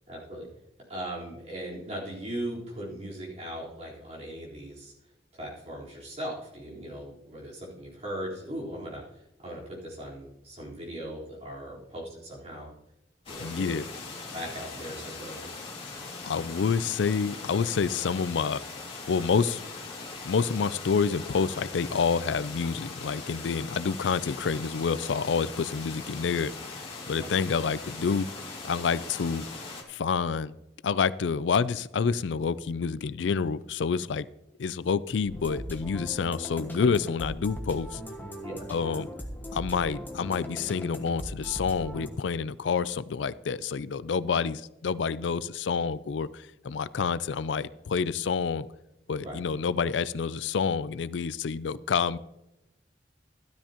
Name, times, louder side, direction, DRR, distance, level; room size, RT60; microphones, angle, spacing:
voice 1, 0.1-0.5 0.9-4.9 5.3-9.0 9.4-12.7 13.3-13.7 14.3-15.5 27.2-27.3 38.4-39.0 49.2-49.4, right 1 dB, 35° right, -5 dB, 4.0 m, -39 dB
sound 1, 13.3-29.8, left 3 dB, 30° left, 2.3 m, -40 dB
voice 2, 13.4-13.8 16.3-18.6 19.1-19.6 20.2-26.5 27.1-28.3 28.6-29.5 29.9-30.5 30.8-34.3 34.6-38.0 38.7-39.1 39.5-48.7 49.1-52.2, left 5 dB, 90° left, 17 dB, 0.4 m, -28 dB
sound 2, 35.3-42.1, equal, 10° left, 1.2 m, -39 dB
12.5 x 12.5 x 3.0 m, 0.88 s
head